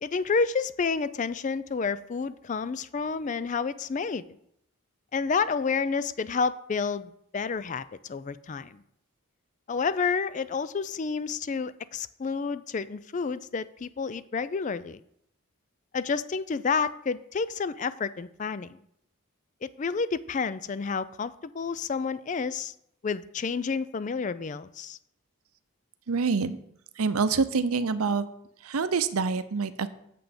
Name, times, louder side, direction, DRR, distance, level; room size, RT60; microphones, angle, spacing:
voice 1, 0.0-4.2 5.1-8.8 9.7-15.0 15.9-18.8 19.6-22.7 23.0-25.0, left 5 dB, 35° left, 15 dB, 0.3 m, -30 dB
voice 2, 26.1-26.6 27.0-28.2 28.6-29.9, right 4 dB, 80° right, 13 dB, 0.6 m, -26 dB
8.2 x 7.6 x 5.1 m, 0.73 s
head